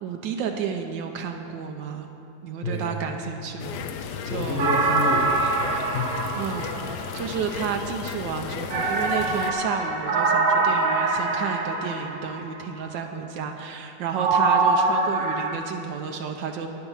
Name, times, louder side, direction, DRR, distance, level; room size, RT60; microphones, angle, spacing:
voice 1, 0.0-2.1 2.4-4.7 6.3-6.7 7.1-16.7, right 7 dB, 85° right, 4 dB, 1.4 m, -31 dB
voice 2, 2.6-3.0 4.3-6.3, left 3 dB, 45° left, -2 dB, 0.9 m, -30 dB
sound 1, 3.6-9.5, left 7 dB, 70° left, 1.2 m, -34 dB
sound 2, 4.6-7.4 8.7-12.5 14.2-15.5, right 3 dB, 55° right, 1.1 m, -24 dB
10.5 x 9.8 x 5.6 m, 2.9 s
omnidirectional pair, 2.0 m